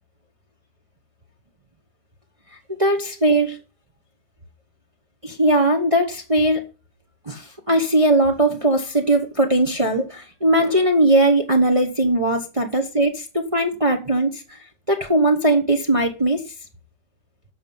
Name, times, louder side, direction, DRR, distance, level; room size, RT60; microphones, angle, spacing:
voice 1, 2.7-3.6 5.2-6.6 7.3-14.4 14.9-16.4, right 1 dB, 25° right, 0.9 m, -19 dB
10.0 x 6.3 x 5.5 m
omnidirectional pair, 1.9 m